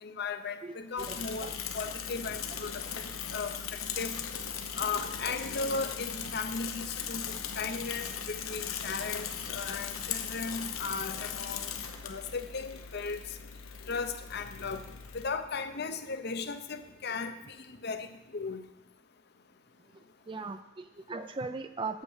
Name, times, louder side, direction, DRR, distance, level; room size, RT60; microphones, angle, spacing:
voice 1, 0.0-2.8 3.3-3.5 4.0-4.2 4.7-11.7 12.0-13.2 13.9-14.8 15.1-18.1 18.3-18.6, left 4 dB, 50° left, 9 dB, 0.7 m, -36 dB
voice 2, 0.6-1.5 5.3-5.4 20.3-22.0, right 3 dB, 25° right, 9 dB, 0.4 m, -39 dB
Bicycle / Mechanisms, 1.0-15.3, left 7 dB, 90° left, 0.9 m, -38 dB
8.5 x 8.5 x 6.3 m, 0.96 s
head